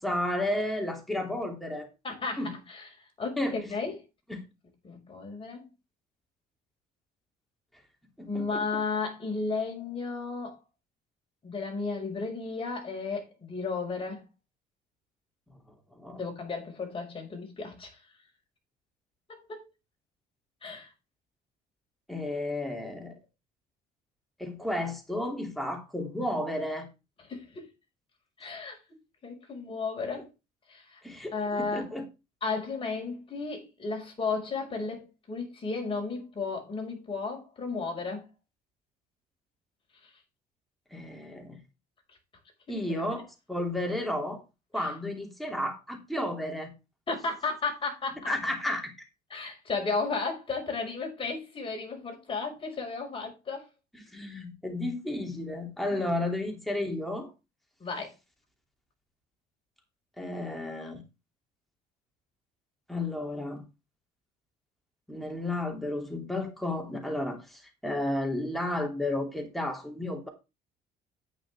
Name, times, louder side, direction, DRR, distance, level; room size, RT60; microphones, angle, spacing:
voice 1, 0.0-1.9 2.4-2.6 3.4-3.7 4.3-4.4 8.2-8.8 16.0-16.2 22.1-23.1 24.4-26.9 31.0-32.0 40.9-41.6 42.7-44.4 44.7-46.7 48.3-48.9 53.9-57.3 60.2-61.0 62.9-63.6 65.1-70.3, left 1 dB, ahead, 2.8 m, -32 dB
voice 2, 2.0-2.9 3.2-4.0 4.8-5.6 8.3-10.6 11.4-14.2 16.1-18.0 19.3-19.6 20.6-20.9 27.3-27.6 28.4-28.8 29.2-30.3 30.7-31.0 31.3-31.9 32.4-38.2 42.7-42.8 44.8-44.9 47.1-48.2 49.3-53.6 55.9-56.0 57.8-58.1, left 4 dB, 30° left, 5.5 m, -34 dB
10.5 x 8.8 x 3.5 m
cardioid pair, 110°, 17 cm